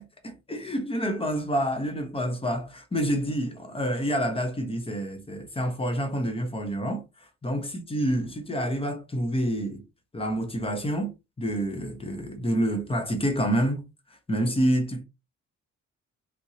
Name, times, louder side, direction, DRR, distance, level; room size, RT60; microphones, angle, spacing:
voice 1, 0.0-7.0 7.4-9.8 10.1-11.1 11.4-13.8 14.3-15.0, equal, 20° left, 1.1 m, -28 dB
3.4 x 2.8 x 3.0 m
cardioid pair, 90°, 30 cm